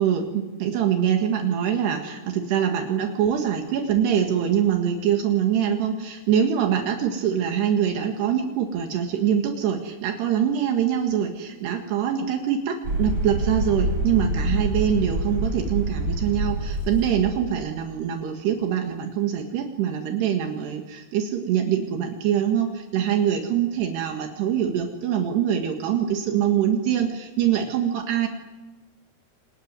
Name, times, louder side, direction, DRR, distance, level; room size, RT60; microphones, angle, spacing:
voice 1, 0.0-28.3, right 9 dB, 75° right, 4 dB, 3.9 m, -24 dB
sound 1, 12.8-17.7, right 1 dB, 30° right, 5.1 m, -26 dB
28.0 x 20.0 x 9.5 m, 1.2 s
omnidirectional pair, 4.9 m